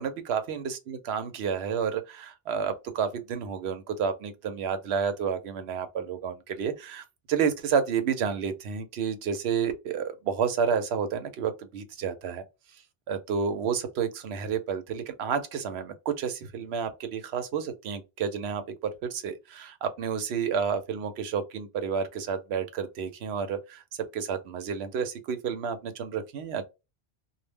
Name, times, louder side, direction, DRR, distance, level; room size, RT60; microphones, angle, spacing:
voice 1, 0.0-12.4 13.1-26.6, right 7 dB, 90° right, 0.9 m, -30 dB
2.2 x 2.1 x 3.3 m
omnidirectional pair, 1.0 m